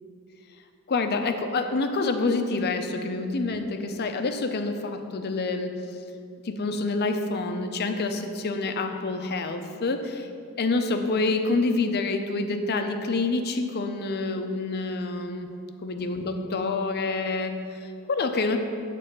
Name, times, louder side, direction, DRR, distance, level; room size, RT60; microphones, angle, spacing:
voice 1, 0.9-5.8 6.4-10.3 10.6-15.5 15.8-18.6, left 3 dB, 50° left, 6 dB, 0.6 m, -27 dB
9.3 x 3.3 x 6.6 m, 2.4 s
head